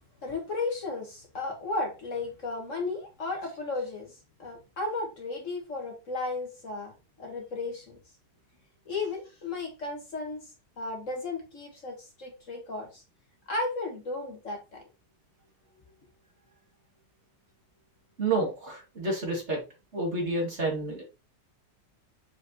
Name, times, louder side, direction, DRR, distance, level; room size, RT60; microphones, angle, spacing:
voice 1, 0.2-4.1 4.4-6.9 7.2-8.0 8.8-10.5 10.8-13.0 13.5-14.8, left 3 dB, 45° left, 1.7 m, -34 dB
voice 2, 18.2-19.6 19.9-21.0, right 2 dB, 40° right, 2.5 m, -29 dB
7.1 x 5.0 x 2.9 m
omnidirectional pair, 1.9 m